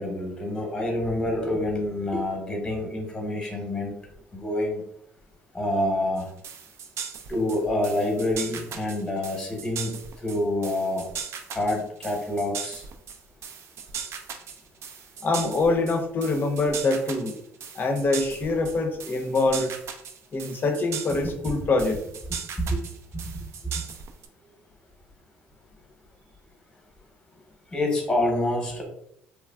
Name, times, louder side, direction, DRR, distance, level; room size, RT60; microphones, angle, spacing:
voice 1, 0.0-3.9 4.3-4.8 5.5-6.3 7.3-11.1 11.5-12.9 22.6-22.8 23.1-23.4 27.7-28.9, left 1 dB, 10° left, 1 dB, 0.8 m, -27 dB
sound 1, 6.2-24.3, right 6 dB, 60° right, 0.4 m, -38 dB
voice 2, 15.2-17.4 17.7-19.7 20.3-22.0, left 3 dB, 40° left, 5 dB, 0.5 m, -24 dB
3.1 x 2.3 x 2.2 m, 0.73 s
supercardioid pair, 75°, 5 cm